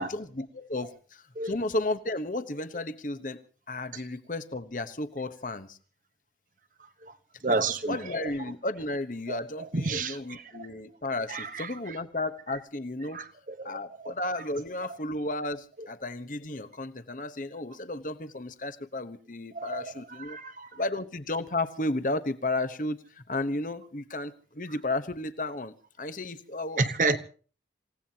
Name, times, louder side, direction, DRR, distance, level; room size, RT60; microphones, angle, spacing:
voice 1, 0.1-3.4 3.7-5.8 7.5-13.2 13.6-20.4 20.7-26.8 27.1-27.2, left 2 dB, 45° left, 1.1 m, -33 dB
voice 2, 7.4-8.0 9.3-9.4 9.7-10.4 11.3-11.7 13.1-13.2 13.6-13.8 19.5-19.9 20.3-20.7 26.8-27.2, right 3 dB, 45° right, 1.1 m, -29 dB
27.5 x 17.0 x 2.9 m
head